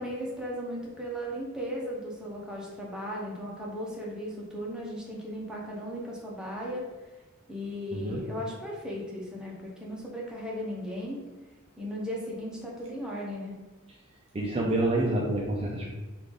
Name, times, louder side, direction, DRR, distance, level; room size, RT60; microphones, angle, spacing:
voice 1, 0.0-6.9 7.5-11.2 11.8-13.5, equal, 5° right, -4 dB, 0.8 m, -36 dB
voice 2, 7.9-8.2 14.3-15.9, right 1 dB, 30° right, -3 dB, 0.4 m, -27 dB
3.3 x 2.4 x 3.7 m, 1.2 s
head